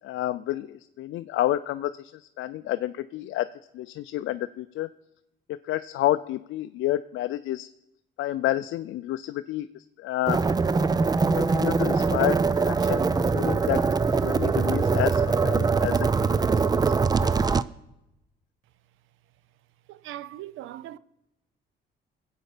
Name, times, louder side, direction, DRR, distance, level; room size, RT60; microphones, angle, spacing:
voice 1, 0.0-3.5 3.7-4.9 5.6-7.7 8.2-10.4 11.3-13.9 14.2-16.4 16.7-17.3, left 14 dB, 75° left, 0.4 m, -30 dB
sound 1, 10.3-17.6, right 4 dB, 20° right, 0.4 m, -23 dB
voice 2, 19.9-21.0, right 13 dB, 85° right, 0.6 m, -39 dB
21.0 x 8.1 x 5.0 m
cardioid pair, 90°, 20 cm